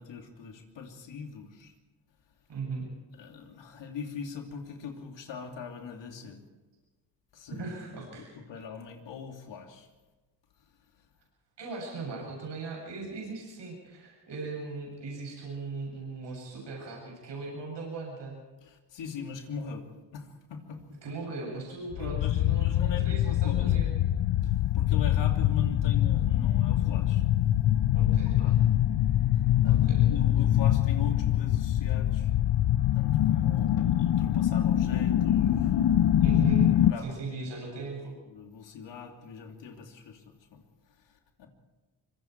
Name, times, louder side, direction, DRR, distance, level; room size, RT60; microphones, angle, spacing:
voice 1, 0.0-1.7 3.2-6.4 7.3-9.9 18.6-19.9 20.1-21.1 22.0-23.9 24.4-27.2 27.6-28.7 29.6-32.3 32.9-36.2 36.8-37.9 38.3-41.5, left 5 dB, 85° left, 3 dB, 2.9 m, -42 dB
voice 2, 2.5-2.9 7.6-8.3 11.6-18.4 21.0-24.0 27.9-28.6 29.7-30.1 36.2-38.2, right 4 dB, 75° right, -2 dB, 7.7 m, -38 dB
sound 1, 21.9-36.9, left 12 dB, 65° left, 0.8 m, -24 dB
25.0 x 23.5 x 4.6 m, 1.2 s
cardioid pair, 75°, 43 cm